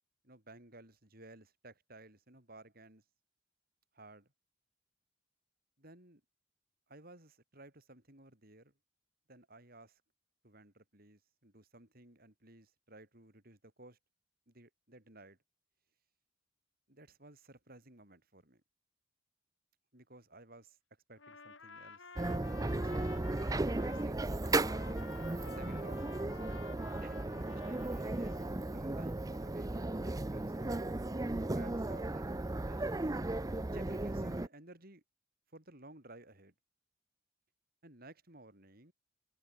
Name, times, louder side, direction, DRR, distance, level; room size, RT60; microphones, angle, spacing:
voice 1, 0.2-3.0 3.9-4.3 5.8-6.2 6.9-8.7 9.3-10.0 10.4-14.0 14.5-15.4 16.9-18.6 19.9-20.8 21.1-22.1 22.4-23.0 23.5-24.8 25.4-26.6 27.0-30.9 31.4-33.1 33.6-35.0 35.5-36.5 37.8-38.9, right 2 dB, 50° right, 6.7 m, -56 dB
Trumpet, 21.2-24.1 24.4-28.5, left 4 dB, 90° left, 7.2 m, -52 dB
sound 1, 22.2-34.5, right 2 dB, 20° right, 0.6 m, -35 dB
head